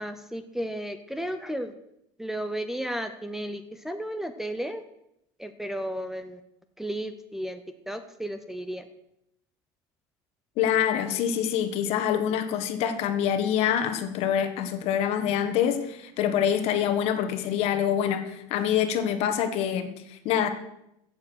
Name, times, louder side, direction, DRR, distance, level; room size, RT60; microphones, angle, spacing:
voice 1, 0.0-1.7 2.2-4.8 5.4-6.4 6.8-7.6 7.9-8.8, right 1 dB, 5° right, 6 dB, 0.6 m, -33 dB
voice 2, 10.6-20.5, left 9 dB, 55° left, 8 dB, 1.5 m, -26 dB
15.5 x 7.4 x 6.3 m, 0.81 s
cardioid pair, 150°, 13 cm